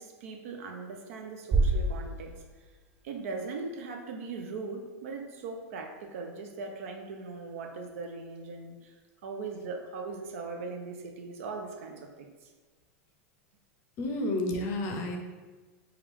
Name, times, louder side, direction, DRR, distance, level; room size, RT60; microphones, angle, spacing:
voice 1, 0.0-2.4 3.0-8.9 9.2-12.5, right 4 dB, 75° right, 4 dB, 0.6 m, -39 dB
sound 1, 1.5-3.6, right 2 dB, 25° right, 0.3 m, -29 dB
voice 2, 14.0-15.2, left 1 dB, 40° left, 3 dB, 0.5 m, -30 dB
4.4 x 2.3 x 3.5 m, 1.3 s
supercardioid pair, 155°, 8 cm